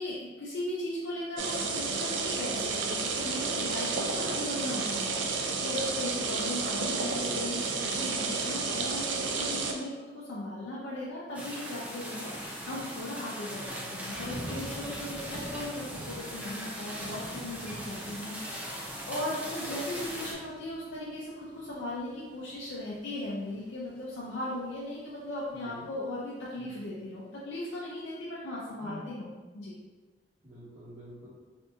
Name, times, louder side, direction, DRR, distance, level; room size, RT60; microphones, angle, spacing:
voice 1, 0.0-29.8, left 1 dB, 85° left, -6 dB, 0.6 m, -38 dB
sound 1, 1.4-9.7, right 4 dB, 85° right, 0.4 m, -31 dB
sound 2, 11.3-20.3, equal, 10° right, 0.4 m, -40 dB
voice 2, 13.5-14.1 25.6-25.9 26.5-26.7 28.8-29.1 30.4-31.3, left 1 dB, 35° right, -14 dB, 1.1 m, -48 dB
Thunder / Rain, 13.7-24.6 25.0-25.5, right 1 dB, 70° right, 1.0 m, -47 dB
2.7 x 2.6 x 3.4 m, 1.3 s
head